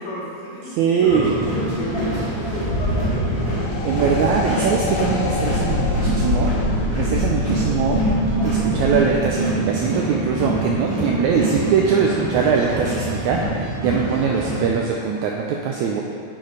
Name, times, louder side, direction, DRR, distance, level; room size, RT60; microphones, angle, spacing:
voice 1, 0.0-3.5, left 1 dB, 60° left, -5 dB, 2.4 m, -32 dB
voice 2, 0.8-1.3 3.8-6.6 7.0-8.0 8.4-16.0, right 6 dB, 80° right, 0 dB, 1.7 m, -22 dB
sound 1, 1.1-14.6, right 1 dB, 20° right, 1.8 m, -25 dB
sound 2, 2.7-9.1, left 3 dB, 85° left, 2.4 m, -26 dB
9.9 x 4.5 x 4.8 m, 2.2 s
omnidirectional pair, 3.7 m